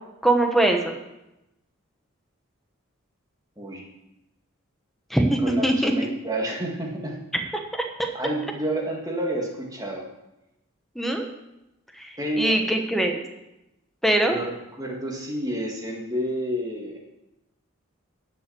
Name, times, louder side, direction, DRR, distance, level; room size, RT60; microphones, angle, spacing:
voice 1, 0.2-0.8 5.1-5.9 7.7-7.8 10.9-11.3 12.0-13.2 14.0-14.4, right 1 dB, ahead, 3 dB, 1.1 m, -22 dB
voice 2, 3.6-3.9 5.4-7.2 8.1-10.1 12.2-12.7 14.3-14.4 14.8-17.0, right 1 dB, 15° right, 0 dB, 1.9 m, -29 dB
11.5 x 6.0 x 7.9 m, 0.94 s
head